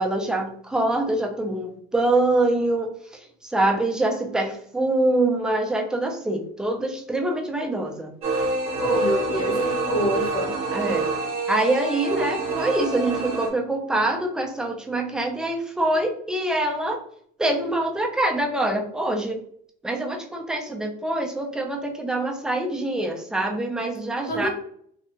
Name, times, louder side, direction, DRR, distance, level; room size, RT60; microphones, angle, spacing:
voice 1, 0.0-8.1 10.7-11.1 11.5-17.0 17.4-19.4 19.8-24.5, right 2 dB, 5° right, 2 dB, 0.3 m, -25 dB
sound 1, 8.2-13.5, right 3 dB, 35° right, 0.8 m, -26 dB
voice 2, 8.8-10.5 24.3-24.5, equal, 60° left, 0 dB, 1.2 m, -26 dB
2.7 x 2.1 x 2.8 m, 0.63 s
cardioid pair, 155°, 19 cm